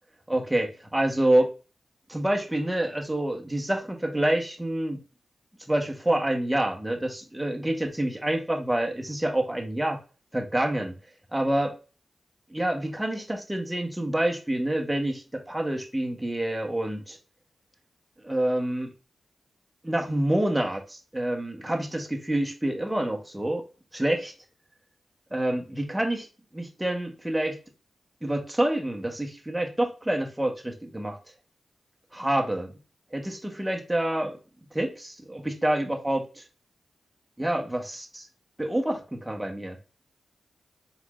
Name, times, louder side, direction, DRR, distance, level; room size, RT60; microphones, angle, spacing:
voice 1, 0.3-1.5 2.1-5.0 5.7-10.0 10.3-11.0 11.3-11.7 12.5-17.2 18.2-18.9 19.8-23.6 23.9-24.3 25.3-26.3 26.5-27.6 28.2-31.2 32.1-32.7 33.1-34.3 34.7-36.4 37.4-38.3 38.6-39.8, right 1 dB, 10° right, 2 dB, 1.2 m, -27 dB
4.4 x 4.2 x 2.5 m, 0.34 s
cardioid pair, 60°, 0 cm